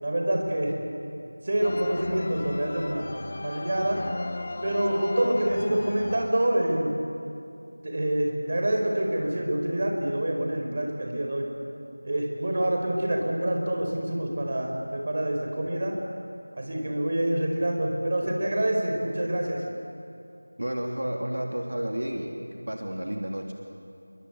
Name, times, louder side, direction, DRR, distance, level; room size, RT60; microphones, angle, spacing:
voice 1, 0.0-0.7 1.4-3.0 3.4-4.0 4.6-6.9 7.8-11.5 12.0-16.0 16.6-19.6, right 1 dB, 35° right, 1 dB, 4.8 m, -26 dB
sound 1, 1.6-6.9, left 2 dB, 35° left, 0.8 m, -37 dB
voice 2, 20.6-22.4 22.7-23.5, right 1 dB, 70° right, 1 dB, 3.1 m, -31 dB
29.5 x 23.5 x 8.2 m, 2.6 s
figure-of-eight pair, 170°, 0 cm